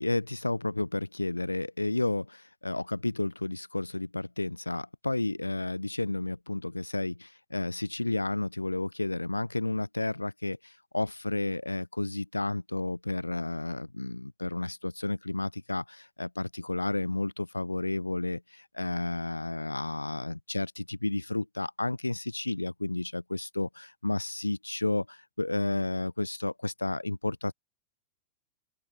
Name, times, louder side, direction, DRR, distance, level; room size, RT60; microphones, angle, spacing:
voice 1, 0.0-27.5, left 2 dB, 85° left, 0.8 m, -32 dB
open air
figure-of-eight pair, 90°, 0 cm